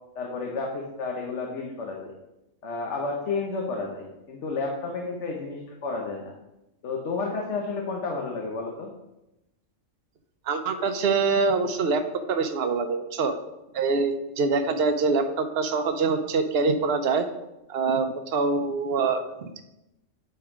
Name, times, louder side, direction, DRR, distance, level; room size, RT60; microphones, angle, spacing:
voice 1, 0.1-2.1 2.6-6.3 6.8-8.9, left 3 dB, 65° left, 0 dB, 1.2 m, -31 dB
voice 2, 10.5-12.0 12.3-13.3 13.7-17.3 17.7-19.6, right 4 dB, 60° right, 7 dB, 0.9 m, -25 dB
8.0 x 4.5 x 4.9 m, 0.92 s
omnidirectional pair, 1.3 m